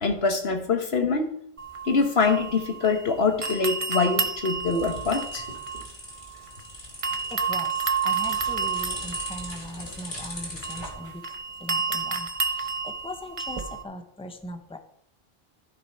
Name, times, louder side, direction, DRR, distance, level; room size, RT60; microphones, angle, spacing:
voice 1, 0.0-1.3 1.8-5.4, left 4 dB, 75° left, 5 dB, 1.6 m, -24 dB
sound 1, 1.6-3.1 3.4-6.6 7.0-13.8, right 5 dB, 35° right, 0.9 m, -30 dB
sound 2, 4.1-10.9, left 1 dB, 55° left, 3.0 m, -40 dB
voice 2, 7.3-7.8 8.0-11.2 11.6-12.3 12.6-14.8, left 1 dB, 5° left, 6 dB, 0.9 m, -39 dB
14.5 x 6.1 x 4.4 m, 0.68 s
omnidirectional pair, 1.0 m